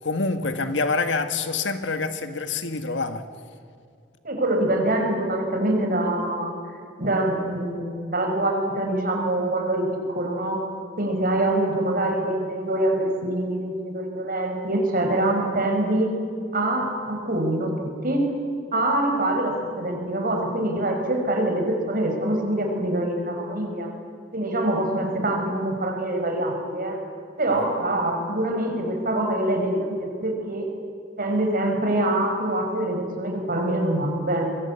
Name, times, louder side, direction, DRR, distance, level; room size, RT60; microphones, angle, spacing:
voice 1, 0.0-3.2, left 3 dB, 75° left, 1.9 m, -26 dB
voice 2, 4.2-10.7 11.0-16.2 16.5-18.3 18.7-23.9 24.3-27.0 27.4-30.7 31.2-34.5, right 1 dB, 50° right, 5.7 m, -25 dB
27.5 x 22.5 x 8.4 m
head